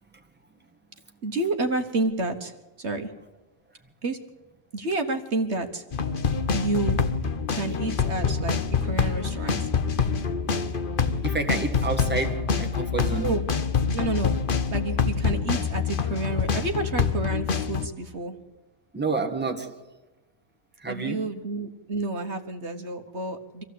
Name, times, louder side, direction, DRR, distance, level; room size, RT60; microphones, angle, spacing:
voice 1, 1.2-3.1 4.0-4.2 4.7-5.8 6.5-7.0 7.5-9.7 13.2-13.4 13.9-14.3 14.7-18.4 20.9-23.6, right 2 dB, 55° right, 1.6 m, -30 dB
sound 1, 5.9-17.9, left 5 dB, 40° left, 1.1 m, -26 dB
voice 2, 11.2-13.3 18.9-19.8 20.8-21.2, right 3 dB, 5° right, 1.8 m, -29 dB
25.0 x 15.5 x 8.4 m
omnidirectional pair, 1.4 m